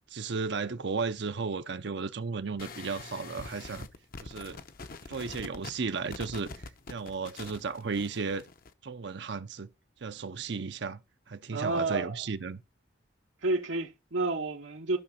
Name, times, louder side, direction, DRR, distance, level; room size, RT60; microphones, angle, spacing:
voice 1, 0.1-3.9 4.2-4.6 5.1-8.4 8.8-9.7 10.0-11.0 11.3-12.6, right 4 dB, 65° right, 0.6 m, -34 dB
sound 1, 2.6-8.7, left 3 dB, 50° left, 0.8 m, -44 dB
voice 2, 11.5-12.2 13.4-15.0, right 3 dB, 85° right, 1.1 m, -30 dB
13.0 x 5.9 x 4.2 m
head